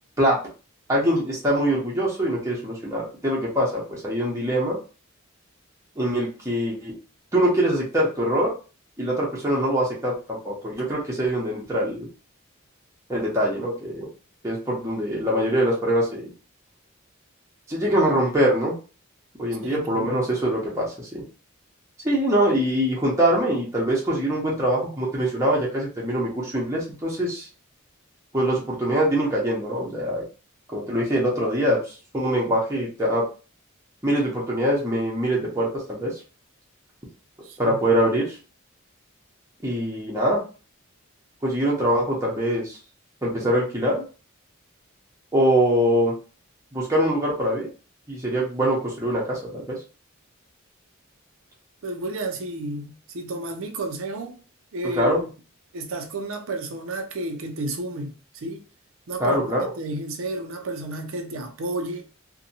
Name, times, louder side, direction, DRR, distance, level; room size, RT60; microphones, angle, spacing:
voice 1, 0.9-4.8 6.0-6.9 7.3-8.5 9.0-12.1 13.1-14.1 14.4-16.2 17.7-18.7 19.4-21.2 22.0-27.5 28.3-30.2 30.7-31.8 32.1-33.2 34.0-36.2 37.6-38.4 39.6-40.4 41.4-42.8 43.2-44.0 45.3-46.1 46.7-47.7 48.1-49.8 55.0-55.2 59.2-59.7, right 1 dB, 15° right, 0.7 m, -23 dB
voice 2, 19.6-20.3 37.4-37.8 51.8-54.4 54.7-55.3 55.7-58.6 59.1-62.1, right 2 dB, 75° right, 0.5 m, -32 dB
2.7 x 2.2 x 2.6 m
head